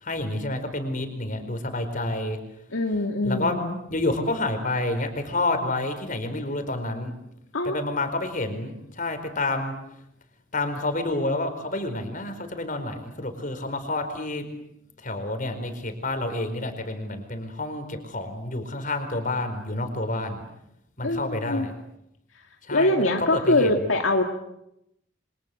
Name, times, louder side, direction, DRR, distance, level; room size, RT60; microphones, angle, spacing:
voice 1, 0.0-2.4 3.2-3.6 3.9-7.1 7.6-9.7 10.5-14.5 15.0-20.5 21.0-21.7 22.7-23.7, left 2 dB, 40° left, 7 dB, 4.6 m, -29 dB
voice 2, 2.7-3.8 7.5-7.8 21.0-21.7 22.7-24.2, left 2 dB, 80° left, 3 dB, 2.2 m, -23 dB
28.5 x 25.5 x 7.7 m, 0.82 s
head